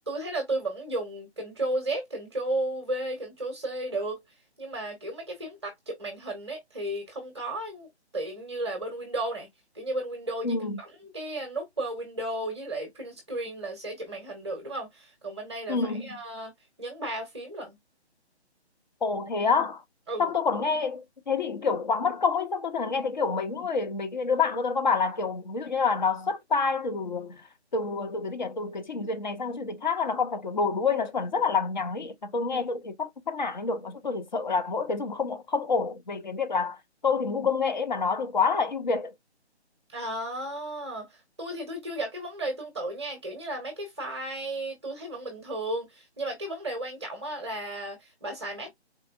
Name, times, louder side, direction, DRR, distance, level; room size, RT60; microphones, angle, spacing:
voice 1, 0.0-4.2 4.6-7.9 8.1-9.5 9.7-16.5 16.8-17.8 20.1-20.3 39.9-48.7, right 1 dB, 25° right, 0.8 m, -34 dB
voice 2, 10.4-10.8 15.7-16.1 19.0-19.8 20.2-27.4 27.7-36.8 37.0-39.1, left 5 dB, 45° left, 0.6 m, -28 dB
3.9 x 2.4 x 2.3 m
figure-of-eight pair, 150°, 34 cm